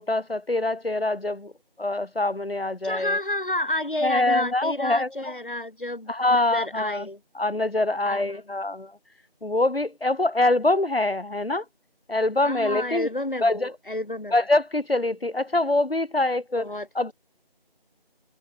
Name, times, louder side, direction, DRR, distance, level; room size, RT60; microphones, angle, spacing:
voice 1, 0.0-1.5 1.8-3.2 4.0-5.3 6.1-7.1 7.4-9.0 9.4-11.7 12.1-13.1 13.4-13.7 14.3-17.1, left 2 dB, 75° left, 1.9 m, -24 dB
voice 2, 2.8-6.1 6.5-7.2 8.1-8.4 12.4-14.3 16.6-16.9, left 1 dB, 60° left, 3.6 m, -30 dB
figure-of-eight pair, 175°, 30 cm